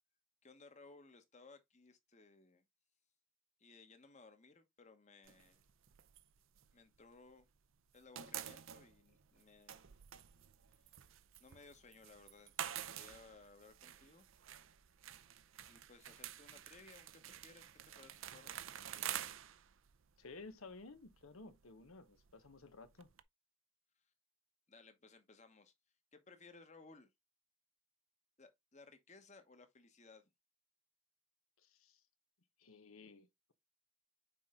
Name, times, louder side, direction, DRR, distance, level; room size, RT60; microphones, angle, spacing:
voice 1, 0.4-2.6 3.6-5.6 6.7-7.5 7.9-9.9 10.9-11.0 11.4-14.3 15.7-19.2 24.7-25.7 26.1-27.1 28.4-30.3, left 3 dB, 35° left, 1.1 m, -61 dB
sound 1, 5.3-7.5 7.8-23.2, right 10 dB, 70° right, 0.6 m, -49 dB
voice 2, 20.2-23.1 31.6-32.0 32.6-33.5, left 3 dB, 90° left, 1.1 m, -55 dB
6.2 x 4.4 x 3.7 m
head